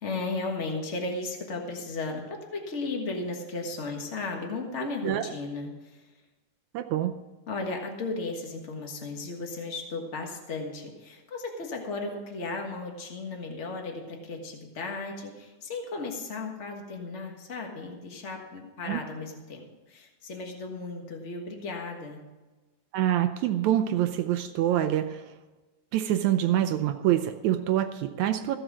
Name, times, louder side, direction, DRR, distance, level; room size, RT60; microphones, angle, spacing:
voice 1, 0.0-6.1 7.5-22.2, left 3 dB, 90° left, 2 dB, 0.6 m, -35 dB
voice 2, 6.7-7.2 18.8-19.0 22.9-25.3 25.9-28.6, right 12 dB, 80° right, 9 dB, 1.7 m, -26 dB
15.0 x 7.7 x 6.2 m, 1.2 s
omnidirectional pair, 3.8 m